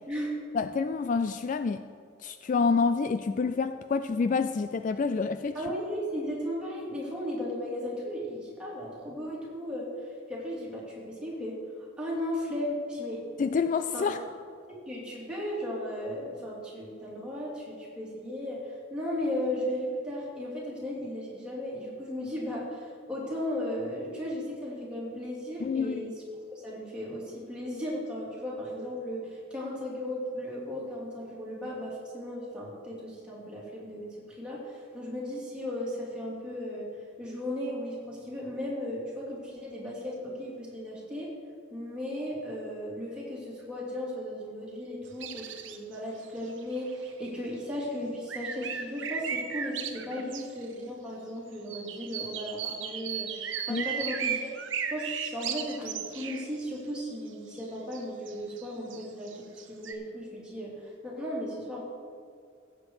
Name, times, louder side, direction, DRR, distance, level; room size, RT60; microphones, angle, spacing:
voice 1, 0.5-1.8 2.2-5.6 13.4-14.2 25.6-26.1 53.7-53.8, left 5 dB, 40° left, 11 dB, 0.3 m, -28 dB
voice 2, 5.5-11.6 12.0-13.2 13.9-14.2 14.9-26.1 26.5-36.9 37.2-41.3 41.7-54.5 54.9-61.8, left 1 dB, 5° right, -6 dB, 3.1 m, -36 dB
sound 1, 45.1-46.0 46.2-46.3 46.6-47.3 48.3-50.7 51.7-56.5 57.6-57.7 57.9-59.9, right 7 dB, 80° right, 1.0 m, -35 dB
15.0 x 8.3 x 4.8 m, 2.2 s
head